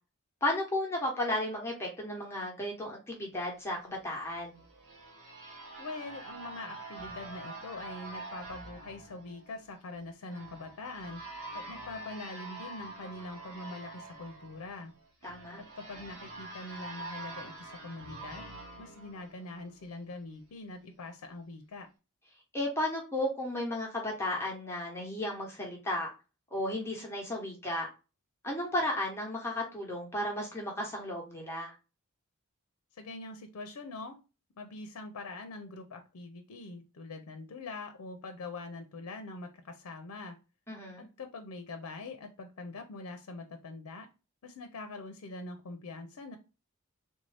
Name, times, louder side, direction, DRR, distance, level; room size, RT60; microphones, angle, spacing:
voice 1, 0.4-4.6 15.2-15.6 22.5-26.1 26.5-27.9 28.4-31.7 40.7-41.1, left 1 dB, 10° left, -2 dB, 0.8 m, -34 dB
sound 1, 4.2-19.9, right 2 dB, 90° right, 1.4 m, -46 dB
voice 2, 5.8-11.2 11.5-14.9 15.6-21.9 32.9-34.2 34.6-40.4 41.0-44.1 44.4-46.4, left 3 dB, 80° left, 6 dB, 0.5 m, -43 dB
3.4 x 2.6 x 3.3 m, 0.31 s
head